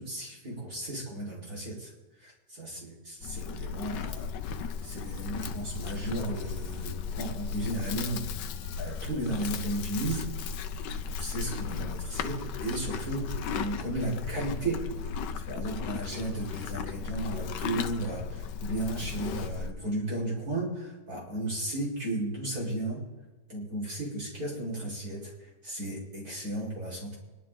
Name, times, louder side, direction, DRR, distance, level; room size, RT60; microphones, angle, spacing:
voice 1, 0.0-1.9 2.2-4.3 4.8-8.3 8.8-10.3 11.2-14.8 15.5-23.0 23.5-27.2, right 1 dB, 60° right, -4 dB, 5.3 m, -34 dB
Livestock farm animals working animals, 3.2-19.7, left 6 dB, 85° left, 1.4 m, -36 dB
24.5 x 12.0 x 3.9 m, 1.2 s
omnidirectional pair, 1.9 m